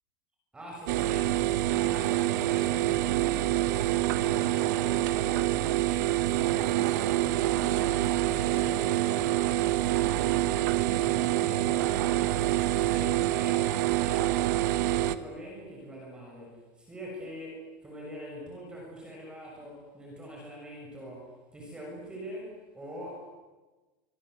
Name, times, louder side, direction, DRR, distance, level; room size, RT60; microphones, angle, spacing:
voice 1, 0.5-23.3, right 1 dB, 10° right, -2 dB, 6.9 m, -44 dB
sound 1, 0.9-15.2, right 14 dB, 60° right, 1.4 m, -26 dB
26.0 x 24.5 x 8.1 m, 1.2 s
supercardioid pair, 165°, 11 cm